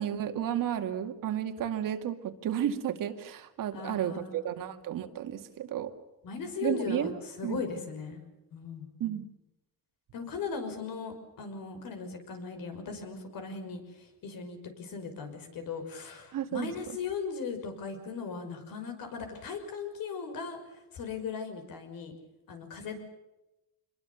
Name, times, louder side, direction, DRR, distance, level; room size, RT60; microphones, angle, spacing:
voice 1, 0.0-5.9 6.6-7.1 7.4-7.6 9.0-9.2 16.3-16.7, right 10 dB, 65° right, 7 dB, 2.2 m, -32 dB
voice 2, 3.7-4.7 6.2-8.2 8.5-8.9 10.1-22.1 22.5-23.0, left 5 dB, 70° left, 6 dB, 6.0 m, -38 dB
26.0 x 22.0 x 7.1 m, 0.97 s
cardioid pair, 140°, 35 cm